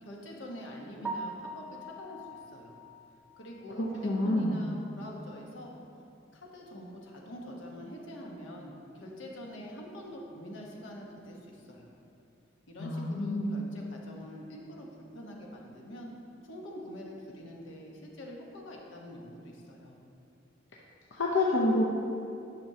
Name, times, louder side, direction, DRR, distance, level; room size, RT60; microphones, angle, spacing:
voice 1, 0.0-2.7 3.4-5.7 6.3-11.9 12.7-14.9 15.1-16.1 16.4-19.9, equal, 90° left, -1 dB, 1.1 m, -45 dB
Piano, 1.0-5.0 5.4-5.5 6.0-6.1 6.4-6.5 9.6-9.7 18.2-18.4, right 2 dB, 5° right, 0.4 m, -44 dB
voice 2, 3.8-4.6 12.8-13.5 21.1-21.8, left 1 dB, 75° left, -3 dB, 0.7 m, -28 dB
10.5 x 6.0 x 2.8 m, 2.6 s
head